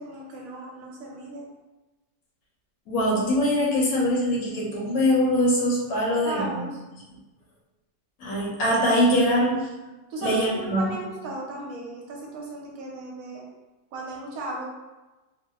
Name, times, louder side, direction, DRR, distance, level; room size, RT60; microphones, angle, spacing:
voice 1, 0.0-1.5 6.2-6.8 10.1-13.4 13.9-14.6, right 2 dB, 75° right, -2 dB, 1.0 m, -35 dB
voice 2, 2.9-6.6 8.2-9.7 10.2-10.9, equal, 75° left, -3 dB, 1.1 m, -23 dB
2.7 x 2.1 x 2.2 m, 1.1 s
omnidirectional pair, 1.6 m